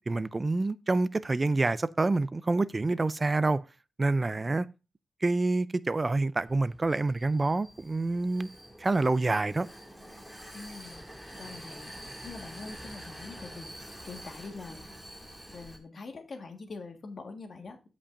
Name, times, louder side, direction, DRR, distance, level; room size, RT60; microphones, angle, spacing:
voice 1, 0.1-3.6 4.0-4.7 5.2-8.5 8.8-9.7, right 3 dB, 30° right, 0.3 m, -27 dB
Vehicle, 6.4-15.8, equal, 5° left, 2.0 m, -47 dB
voice 2, 10.5-11.1 11.4-11.9 12.2-14.8 15.5-17.9, left 3 dB, 55° left, 1.4 m, -44 dB
15.5 x 5.2 x 2.5 m
wide cardioid pair, 130°, 0 cm